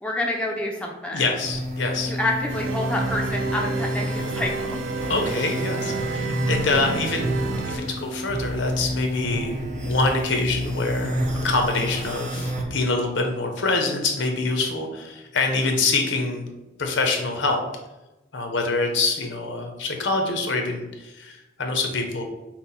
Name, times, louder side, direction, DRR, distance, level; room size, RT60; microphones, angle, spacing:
voice 1, 0.0-1.2 2.1-4.8, left 1 dB, 5° left, -1 dB, 0.4 m, -28 dB
voice 2, 1.1-2.1 5.1-16.5 16.8-17.6 18.3-22.2, left 3 dB, 80° left, 3 dB, 0.8 m, -25 dB
sound 1, 1.4-12.6, equal, 40° right, 0.7 m, -29 dB
sound 2, 2.5-7.8, right 4 dB, 80° right, 0.6 m, -30 dB
5.7 x 2.2 x 4.0 m, 1.0 s
head